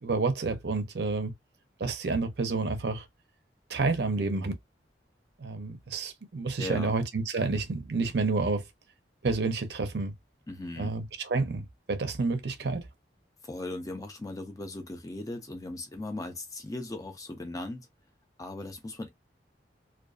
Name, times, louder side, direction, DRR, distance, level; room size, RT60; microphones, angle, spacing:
voice 1, 0.0-1.3 1.8-3.0 3.7-4.5 5.4-8.6 9.2-10.1 10.8-12.8, right 3 dB, 65° right, 0.6 m, -29 dB
voice 2, 6.6-6.9 10.5-10.9 13.4-17.9 18.4-19.1, left 2 dB, 20° left, 0.4 m, -38 dB
2.4 x 2.3 x 2.4 m
head